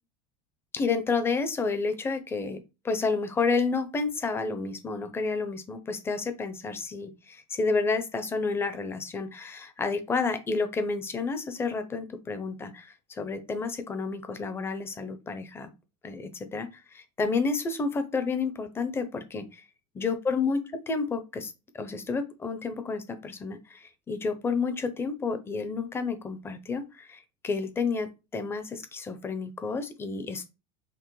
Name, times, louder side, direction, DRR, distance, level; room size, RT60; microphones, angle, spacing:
voice 1, 0.7-2.6 2.8-15.7 16.0-19.6 19.9-30.6, left 4 dB, 10° left, 10 dB, 0.4 m, -30 dB
5.7 x 2.1 x 3.1 m, 0.27 s
supercardioid pair, 160°, 20 cm